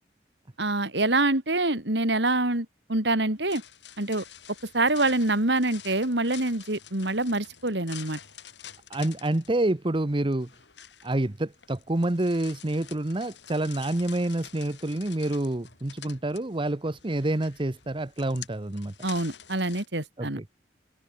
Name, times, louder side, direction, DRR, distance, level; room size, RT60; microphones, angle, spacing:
voice 1, 0.6-3.6 4.0-4.2 4.7-8.2 19.0-20.4, right 2 dB, 65° right, 3.6 m, -25 dB
sound 1, 3.4-19.9, left 10 dB, 75° left, 5.1 m, -48 dB
voice 2, 8.9-10.5 11.0-18.9 20.2-20.5, right 1 dB, 30° right, 0.9 m, -28 dB
head